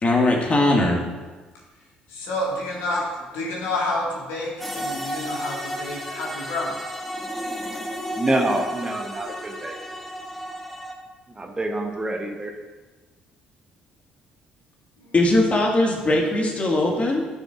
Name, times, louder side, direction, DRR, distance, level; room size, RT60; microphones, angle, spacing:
voice 1, 0.0-1.0 15.1-17.3, left 2 dB, 30° left, 0 dB, 1.9 m, -20 dB
voice 2, 2.1-3.0 3.3-6.7, left 2 dB, 65° left, -2 dB, 1.9 m, -29 dB
sound 1, 4.6-10.9, equal, 5° left, 1.0 m, -33 dB
voice 3, 8.2-9.7 11.4-12.5, right 1 dB, 20° right, 3 dB, 1.0 m, -26 dB
13.0 x 6.4 x 2.6 m, 1.3 s
figure-of-eight pair, 45°, 4 cm